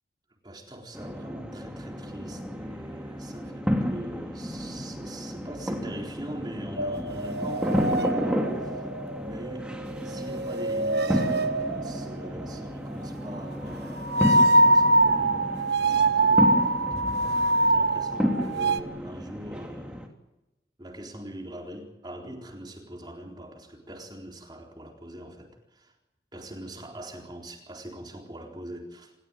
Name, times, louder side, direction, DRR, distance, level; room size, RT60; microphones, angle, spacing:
voice 1, 0.4-8.9 9.2-9.8 10.0-16.5 17.6-20.0 20.8-25.9 26.3-29.1, right 1 dB, 25° right, 4.0 m, -42 dB
sound 1, 0.9-20.1, equal, 5° right, 3.0 m, -32 dB
sound 2, 6.8-9.7 10.0-12.4 14.0-18.8, right 2 dB, 70° right, 1.2 m, -24 dB
28.5 x 15.5 x 9.0 m
head